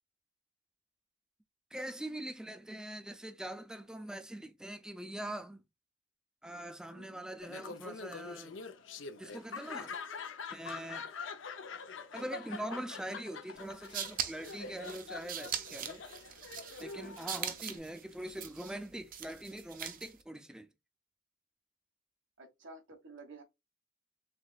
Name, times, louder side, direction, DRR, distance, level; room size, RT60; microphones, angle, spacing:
voice 1, 1.7-5.6 6.4-8.6 9.2-9.9 10.5-11.0 12.1-16.0 16.8-20.7, right 1 dB, 5° right, 0.4 m, -43 dB
Laughter, 7.4-17.8, left 5 dB, 90° left, 0.6 m, -45 dB
sound 1, 13.6-20.2, right 8 dB, 45° right, 0.6 m, -41 dB
voice 2, 17.0-17.5 22.4-23.4, right 2 dB, 75° right, 1.3 m, -53 dB
3.6 x 3.4 x 2.3 m
head